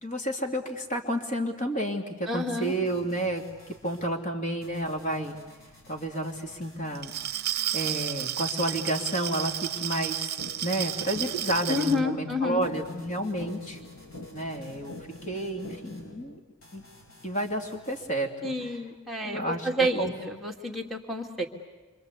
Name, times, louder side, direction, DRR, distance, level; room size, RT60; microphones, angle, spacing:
voice 1, 0.0-3.4 3.8-5.4 5.9-7.1 7.7-10.4 10.6-13.8 14.3-15.0 15.3-16.4 16.7-16.8 17.2-18.8 19.2-20.1, right 1 dB, 40° left, 3 dB, 2.7 m, -31 dB
voice 2, 2.3-2.7 11.7-12.7 18.4-21.5, left 1 dB, ahead, -1 dB, 2.3 m, -29 dB
sound 1, 2.6-4.1 4.6-8.1 8.6-10.1 10.6-12.1 12.6-16.1 16.6-18.1, left 1 dB, 70° left, 8.0 m, -54 dB
Glass, 6.9-12.0, right 13 dB, 50° right, 0.8 m, -32 dB
sound 2, 10.4-16.4, left 2 dB, 85° left, 1.7 m, -45 dB
27.5 x 25.5 x 8.2 m, 1.2 s
head